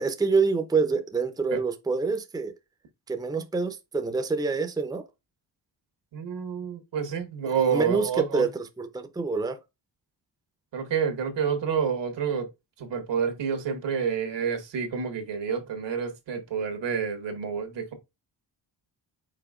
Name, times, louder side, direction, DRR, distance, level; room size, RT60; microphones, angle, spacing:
voice 1, 0.0-2.5 3.1-5.0 7.5-9.6, right 4 dB, 10° right, 0.6 m, -26 dB
voice 2, 6.1-8.4 10.7-12.5 12.8-17.9, right 7 dB, 80° right, 1.5 m, -28 dB
5.0 x 4.5 x 2.4 m
cardioid pair, 110°, 43 cm